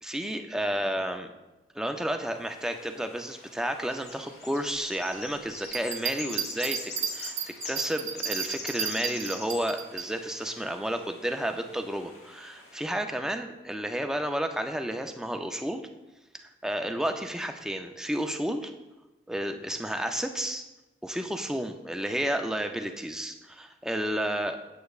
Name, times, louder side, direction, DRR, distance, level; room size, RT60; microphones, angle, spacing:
voice 1, 0.0-1.3 1.7-7.4 7.6-15.8 16.4-18.7 19.3-20.6 21.0-24.6, right 1 dB, 5° right, 5 dB, 0.4 m, -31 dB
sound 1, 2.3-12.8, left 3 dB, 60° left, 1.6 m, -43 dB
Bell, 5.6-10.1 10.6-10.7, right 8 dB, 45° right, 0.7 m, -33 dB
8.5 x 7.9 x 2.4 m, 1.1 s
head